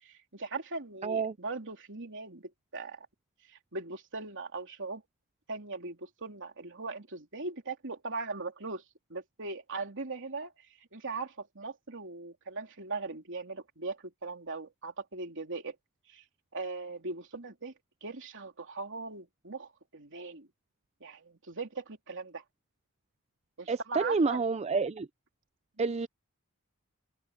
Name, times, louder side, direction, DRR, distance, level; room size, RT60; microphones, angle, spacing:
voice 1, 0.0-3.1 3.5-5.0 5.5-8.8 9.1-15.7 16.1-16.2 16.5-17.7 18.0-20.5 21.0-22.4 23.6-24.4 25.8-25.9, right 3 dB, 60° right, 3.3 m, -40 dB
voice 2, 1.0-1.3 23.7-25.1 25.8-26.1, right 4 dB, 30° right, 0.4 m, -29 dB
open air
head